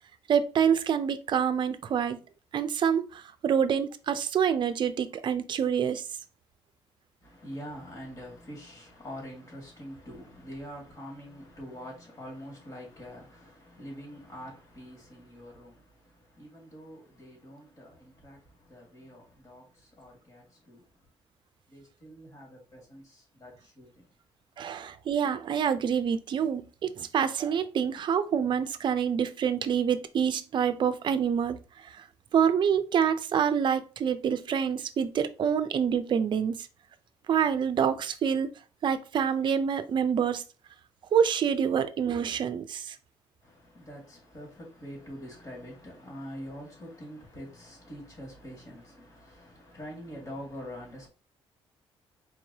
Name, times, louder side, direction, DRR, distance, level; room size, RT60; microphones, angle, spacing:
voice 1, 0.3-2.2 2.5-6.0 24.6-31.6 31.9-32.0 32.3-36.7 37.3-38.5 38.8-40.4 41.1-43.0, right 7 dB, 50° right, 0.5 m, -26 dB
voice 2, 7.2-21.1 21.7-24.2 43.4-51.1, equal, 35° left, 2.4 m, -45 dB
4.6 x 3.1 x 2.8 m
cardioid pair, 110°, 10 cm